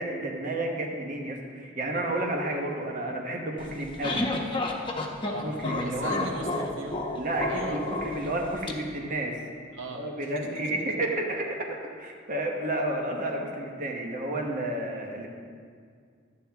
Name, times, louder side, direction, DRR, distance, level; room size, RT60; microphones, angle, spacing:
voice 1, 0.0-4.3 5.4-6.3 7.1-9.4 9.9-15.3, right 1 dB, 45° right, 1 dB, 1.1 m, -31 dB
sound 1, 3.6-8.7, left 2 dB, 25° left, 0.9 m, -31 dB
voice 2, 5.2-5.6 5.8-7.1 7.5-7.8 9.7-10.3, right 2 dB, 75° right, 1 dB, 1.0 m, -38 dB
12.0 x 8.8 x 3.5 m, 2.1 s
head